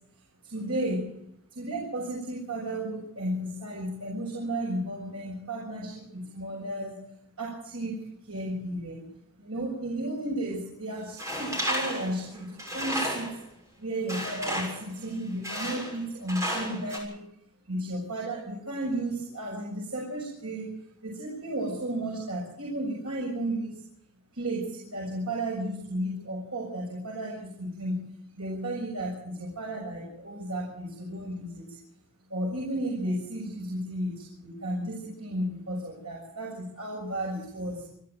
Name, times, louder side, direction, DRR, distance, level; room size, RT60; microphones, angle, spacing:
voice 1, 0.4-1.1 1.5-7.0 7.4-9.0 9.4-13.3 13.8-17.3 17.7-20.7 21.0-23.8 24.3-28.0 28.3-31.8 32.3-37.9, right 1 dB, 80° right, -3 dB, 7.0 m, -33 dB
Tools, 11.2-13.4 14.1-14.9 15.4-16.0 16.3-17.0, equal, 15° right, 6.7 m, -32 dB
28.0 x 12.5 x 7.8 m, 0.73 s
head